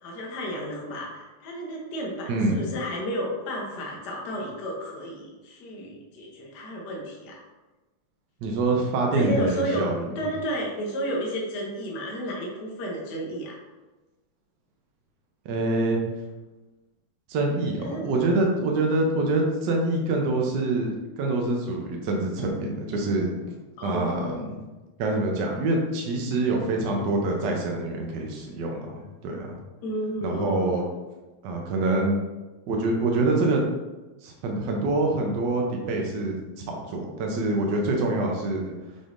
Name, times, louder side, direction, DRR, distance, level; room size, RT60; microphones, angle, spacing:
voice 1, 0.0-7.4 8.9-9.9 10.1-13.6 17.8-18.1 23.8-24.4 29.8-30.8, equal, 60° left, -2 dB, 1.3 m, -32 dB
voice 2, 2.3-2.6 8.4-10.1 15.4-16.0 17.3-23.4 23.8-24.6 25.0-29.6 30.2-30.8 31.4-32.2 32.7-33.6 34.2-36.4 36.7-38.7, right 2 dB, 70° right, 1 dB, 1.1 m, -25 dB
6.0 x 3.5 x 2.5 m, 1.1 s
omnidirectional pair, 2.4 m